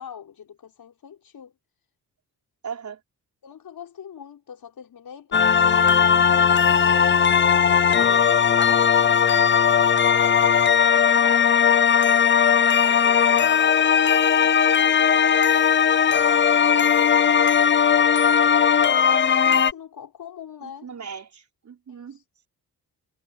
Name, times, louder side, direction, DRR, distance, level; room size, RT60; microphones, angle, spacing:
voice 1, 0.0-1.5 3.4-12.5 12.8-15.5 16.2-17.6 19.1-20.9 21.9-22.2, left 8 dB, 65° left, 5.8 m, -43 dB
voice 2, 2.6-3.0 20.6-22.2, right 6 dB, 50° right, 5.0 m, -38 dB
sound 1, 5.3-19.7, left 7 dB, 30° left, 0.5 m, -18 dB
cardioid pair, 115°, 37 cm